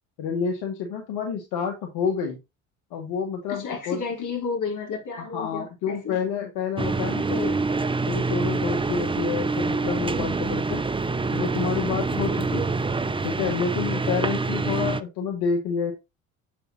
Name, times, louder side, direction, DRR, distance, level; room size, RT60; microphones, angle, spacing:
voice 1, 0.2-2.4 2.9-4.0 5.2-7.6 8.0-10.8 11.3-12.7 13.2-15.9, left 6 dB, 70° left, 2.1 m, -28 dB
voice 2, 3.5-6.2, left 5 dB, 45° left, 3.6 m, -32 dB
sound 1, 6.8-15.0, right 3 dB, 15° right, 0.7 m, -26 dB
7.7 x 7.0 x 2.8 m
hypercardioid pair, 65°, 41 cm